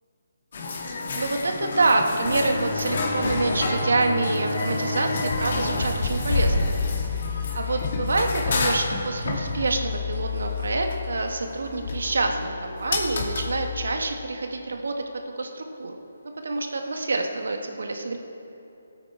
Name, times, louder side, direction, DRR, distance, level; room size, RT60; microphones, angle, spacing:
sound 1, 0.5-12.1 12.9-13.5 17.4-17.5, left 3 dB, 55° left, 2.1 m, -29 dB
voice 1, 1.1-6.7 7.5-16.0 16.4-18.2, right 3 dB, 75° right, 4 dB, 1.5 m, -27 dB
sound 2, 2.2-7.6, left 1 dB, 75° left, 2.1 m, -30 dB
sound 3, 5.4-13.9, left 8 dB, 15° left, 3.1 m, -33 dB
18.0 x 8.8 x 4.8 m, 2.8 s
figure-of-eight pair, 155°, 0 cm